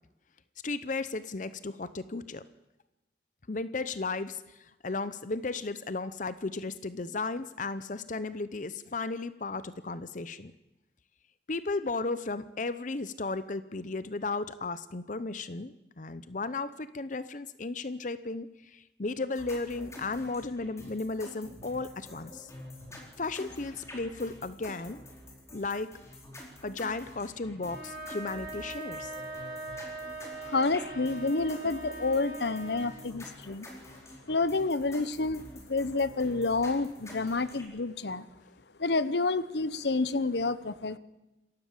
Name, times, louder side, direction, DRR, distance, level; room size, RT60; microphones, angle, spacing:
voice 1, 0.6-2.4 3.5-10.5 11.5-22.5 23.2-25.0 25.5-25.9 26.6-29.1 31.6-31.7, left 3 dB, 45° left, 14 dB, 0.7 m, -35 dB
sound 1, 19.3-37.6, left 1 dB, 15° left, 4.5 m, -48 dB
sound 2, 27.6-33.0, right 2 dB, 55° right, 6.5 m, -41 dB
voice 2, 30.5-33.7 34.3-35.4 35.7-38.3 38.8-41.0, left 3 dB, 70° left, 15 dB, 1.0 m, -29 dB
27.5 x 14.5 x 7.4 m, 0.99 s
head